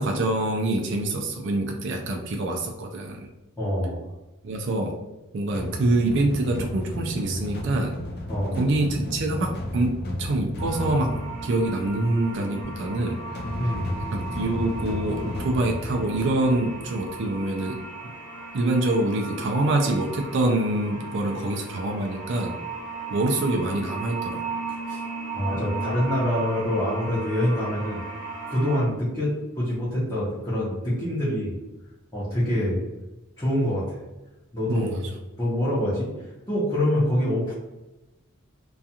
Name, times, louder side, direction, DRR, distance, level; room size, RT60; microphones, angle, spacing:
voice 1, 0.0-3.3 4.4-4.9 5.3-7.9 8.5-11.2 11.4-13.2 14.1-18.1 18.5-22.5 23.1-24.4 34.7-35.0, right 2 dB, 55° right, 1 dB, 0.3 m, -25 dB
voice 2, 3.6-4.0 8.3-8.6 13.6-14.0 24.9-25.0 25.3-28.0 28.5-31.5 32.1-32.8 33.4-34.0 34.5-35.0 35.4-36.1 36.5-37.5, left 1 dB, 15° left, -11 dB, 0.7 m, -25 dB
sound 1, 5.5-17.4, left 1 dB, 45° left, 0.4 m, -34 dB
sound 2, 10.6-28.8, right 3 dB, 30° right, 0.7 m, -36 dB
2.4 x 2.3 x 2.7 m, 1.0 s
head